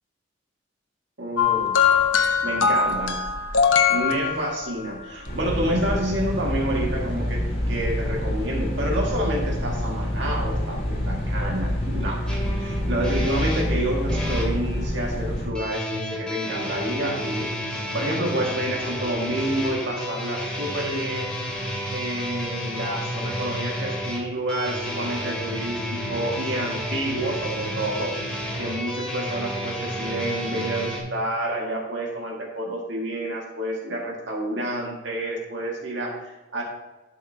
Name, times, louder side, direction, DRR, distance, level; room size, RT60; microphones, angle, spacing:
voice 1, 1.2-1.8 2.4-3.1 3.9-12.2 12.6-21.3 21.9-28.1 28.6-36.6, right 1 dB, 70° right, -2 dB, 1.8 m, -29 dB
sound 1, 1.4-4.9 6.0-6.1, left 6 dB, 85° left, 0.9 m, -21 dB
sound 2, 5.3-15.5, left 1 dB, 55° left, 2.7 m, -27 dB
sound 3, 12.3-14.5 15.5-31.0, equal, 5° left, 2.2 m, -31 dB
11.5 x 6.5 x 2.7 m, 1.1 s
head